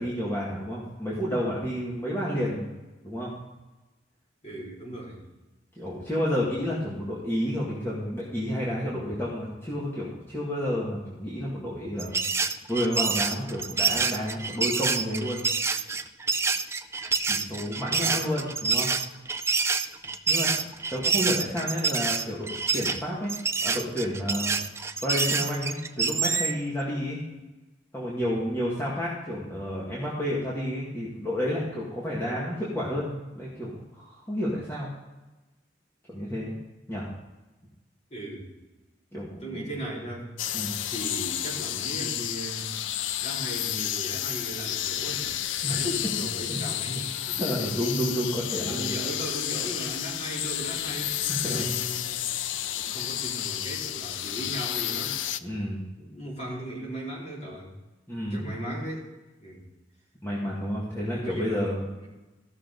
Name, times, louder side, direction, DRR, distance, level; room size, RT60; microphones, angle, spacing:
voice 1, 0.0-2.7 3.0-3.3 5.8-12.2 12.7-15.5 17.3-18.9 20.3-20.5 20.9-23.3 23.6-24.6 25.0-27.2 27.9-34.9 36.1-36.5 36.9-37.1 39.1-39.7 40.5-40.8 45.6-45.9 46.5-46.6 47.4-48.9 51.3-51.7 55.4-55.8 58.1-58.5 60.2-61.8, equal, 15° left, -7 dB, 2.0 m, -30 dB
voice 2, 4.4-5.3 38.1-38.5 39.4-40.3 40.6-42.7 43.2-45.3 45.8-47.4 48.7-52.2 52.7-55.2 56.0-57.7 58.3-59.1 59.4-59.6 61.1-62.1, right 1 dB, 35° left, -5 dB, 3.9 m, -37 dB
sound 1, 12.0-26.6, right 4 dB, 15° right, 0.4 m, -27 dB
sound 2, 40.4-55.4, left 11 dB, 75° left, 0.4 m, -31 dB
15.0 x 6.5 x 4.0 m, 1.1 s
head